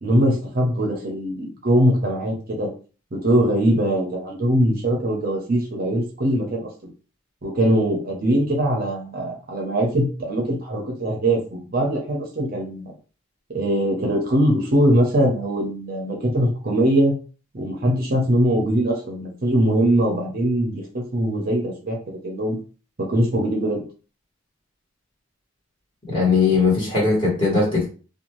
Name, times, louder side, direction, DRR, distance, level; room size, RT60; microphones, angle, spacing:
voice 1, 0.0-2.7 3.1-6.7 7.4-12.9 13.5-17.1 17.5-22.6 23.0-23.8, right 1 dB, 45° right, 0 dB, 0.6 m, -21 dB
voice 2, 26.1-27.9, left 4 dB, 25° left, -5 dB, 1.4 m, -19 dB
2.6 x 2.3 x 3.0 m, 0.37 s
head